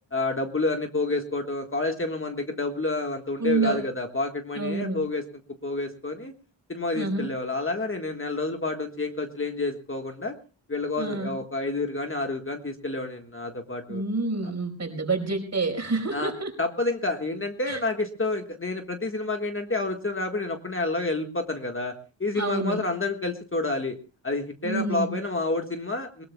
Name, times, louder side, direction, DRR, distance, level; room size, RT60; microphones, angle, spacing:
voice 1, 0.1-5.2 5.6-6.3 6.7-10.3 10.7-14.0 16.1-16.3 16.6-21.9 22.2-24.0 24.2-26.2, left 2 dB, 25° left, 5 dB, 1.5 m, -29 dB
voice 2, 3.4-3.8 4.5-5.0 6.9-7.3 11.0-11.4 13.9-16.5 17.7-17.8 22.3-22.8 24.6-25.2, right 3 dB, 35° right, 4 dB, 4.8 m, -28 dB
21.5 x 20.5 x 2.2 m, 0.33 s
wide cardioid pair, 110°, 46 cm